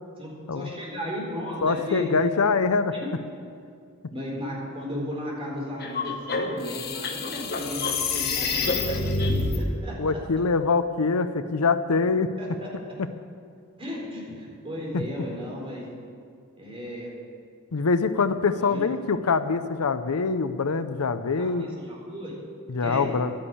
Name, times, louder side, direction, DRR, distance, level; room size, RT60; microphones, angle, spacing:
voice 1, 0.2-2.1 4.1-7.8 8.1-10.0 12.4-12.7 13.8-15.8 16.6-17.1 18.3-18.9 21.4-22.4 22.8-23.1, left 1 dB, 25° right, -4 dB, 4.4 m, -35 dB
voice 2, 1.6-2.9 10.0-12.3 14.9-15.0 17.7-21.6 22.7-23.3, left 4 dB, 75° left, 11 dB, 0.6 m, -24 dB
sound 1, 5.8-9.6, left 3 dB, 45° left, 1.3 m, -27 dB
12.0 x 10.5 x 8.4 m, 2.3 s
head